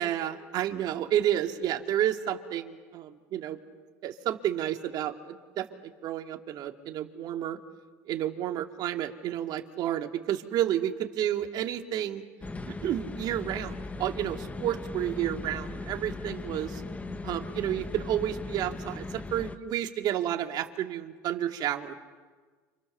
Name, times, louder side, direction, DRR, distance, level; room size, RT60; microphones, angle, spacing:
voice 1, 0.0-3.6 4.0-7.6 8.1-12.2 12.7-16.8 17.2-21.9, right 11 dB, 55° right, 5 dB, 2.3 m, -31 dB
sound 1, 12.4-19.6, left 3 dB, 15° left, 1.4 m, -38 dB
29.5 x 27.0 x 7.0 m, 1.4 s
supercardioid pair, 95°, 9 cm